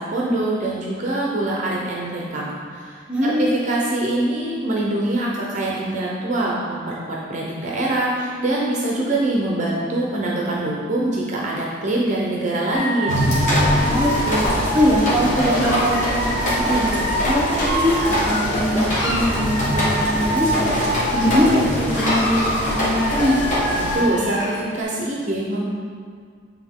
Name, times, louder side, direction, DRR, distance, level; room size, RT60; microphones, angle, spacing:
voice 1, 0.0-13.3 23.8-25.7, right 1 dB, 40° right, -3 dB, 0.6 m, -24 dB
voice 2, 3.1-3.5 13.8-14.4 14.7-20.7 21.1-23.5, equal, 5° right, -6 dB, 0.9 m, -22 dB
Dog / Alarm, 12.7-18.6 18.9-21.6 21.9-24.6, right 1 dB, 75° left, 1.5 m, -26 dB
sound 1, 13.1-24.0, left 1 dB, 40° left, 1.4 m, -23 dB
8.2 x 3.6 x 3.6 m, 2.1 s
head